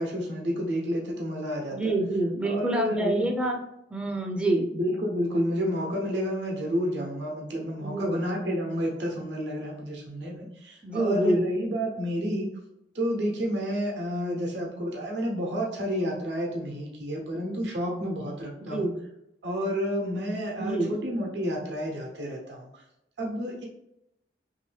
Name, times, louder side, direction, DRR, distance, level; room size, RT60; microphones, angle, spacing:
voice 1, 0.0-1.9 2.4-3.4 4.7-12.5 12.9-18.9 19.4-22.8 23.2-23.7, equal, 70° right, 0 dB, 0.8 m, -30 dB
voice 2, 1.7-3.6 3.9-4.7 7.8-8.2 10.8-11.4 18.7-18.9 20.6-21.0, right 2 dB, 5° right, 1 dB, 0.4 m, -26 dB
2.9 x 2.7 x 3.2 m, 0.84 s
head